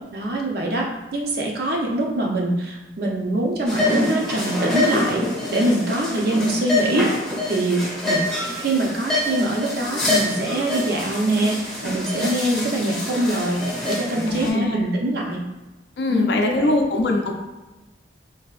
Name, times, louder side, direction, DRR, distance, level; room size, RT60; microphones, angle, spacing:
voice 1, 0.1-5.2 5.5-7.1 7.5-8.2 8.6-15.4 16.1-16.8, right 1 dB, 55° right, -1 dB, 0.6 m, -24 dB
sound 1, 3.7-14.5, left 2 dB, 5° left, 0.6 m, -26 dB
voice 2, 14.3-14.9 16.0-17.3, left 2 dB, 65° left, 2 dB, 0.4 m, -22 dB
3.3 x 2.6 x 2.4 m, 1.1 s
head